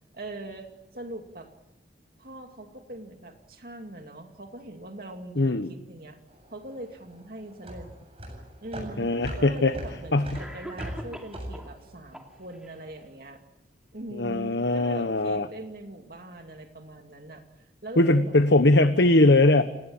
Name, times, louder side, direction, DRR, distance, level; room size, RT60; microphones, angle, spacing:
voice 1, 0.1-1.5 2.2-6.2 6.5-7.9 8.6-13.4 13.9-18.4, right 1 dB, 55° right, 4 dB, 2.5 m, -41 dB
voice 2, 5.4-5.7 9.0-9.7 10.1-10.3 14.1-15.5 18.0-19.6, left 2 dB, 75° left, 9 dB, 1.2 m, -20 dB
sound 1, 6.3-12.8, equal, 30° right, 7.8 m, -39 dB
Cough, 8.6-8.7 9.7-9.8 10.3-11.8 12.1-12.8, equal, 5° right, 2.9 m, -42 dB
29.5 x 18.5 x 8.9 m, 0.97 s
head